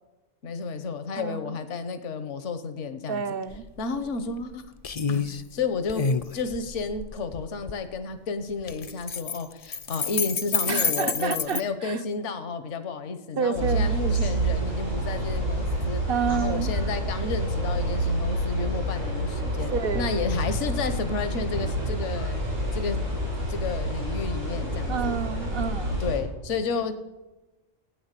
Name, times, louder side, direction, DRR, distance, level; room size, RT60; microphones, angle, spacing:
voice 1, 0.4-3.2 3.8-4.7 5.1-5.2 5.5-6.1 6.3-16.0 16.3-22.4 22.7-23.0 23.5-25.2 26.0-27.0, left 4 dB, 75° left, 10 dB, 1.3 m, -31 dB
voice 2, 1.2-1.6 3.1-3.6 10.7-12.0 13.4-14.0 16.1-16.7 19.7-20.2 24.9-26.0, right 7 dB, 55° right, 12 dB, 0.8 m, -29 dB
sound 1, 3.5-3.6 4.0-4.5 4.8-5.4 5.9-7.8 8.6-11.6, left 5 dB, 45° left, 0.5 m, -28 dB
sound 2, 13.5-26.2, right 1 dB, 85° right, 8.0 m, -28 dB
15.0 x 9.3 x 8.3 m, 1.1 s
omnidirectional pair, 1.3 m